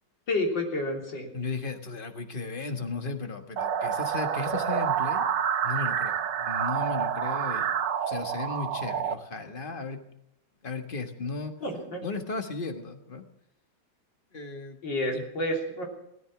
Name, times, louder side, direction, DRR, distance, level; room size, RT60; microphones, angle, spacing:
voice 1, 0.3-1.3 11.6-12.0 14.8-15.8, left 1 dB, 90° left, 1 dB, 4.1 m, -29 dB
voice 2, 1.3-5.3 5.6-10.0 10.6-11.5 12.0-13.2 14.3-14.8 15.1-15.2, left 3 dB, 30° left, 6 dB, 1.6 m, -35 dB
sound 1, 3.6-9.1, right 8 dB, 75° right, 1.6 m, -28 dB
17.0 x 13.5 x 6.0 m, 0.82 s
omnidirectional pair, 1.9 m